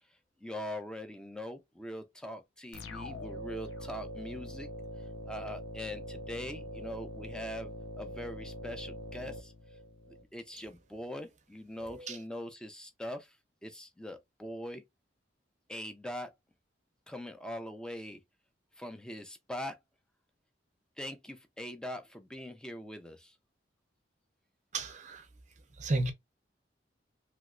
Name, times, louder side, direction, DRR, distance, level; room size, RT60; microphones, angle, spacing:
voice 1, 0.4-4.7 5.3-7.7 8.0-9.5 10.3-13.3 13.6-14.8 15.7-16.3 17.1-18.2 18.8-19.8 21.0-23.3, left 1 dB, 5° left, 0.4 m, -42 dB
sound 1, 2.7-10.2, left 1 dB, 90° left, 0.7 m, -43 dB
voice 2, 24.7-25.2 25.8-26.1, right 2 dB, 40° right, 0.6 m, -33 dB
3.1 x 3.0 x 2.4 m
head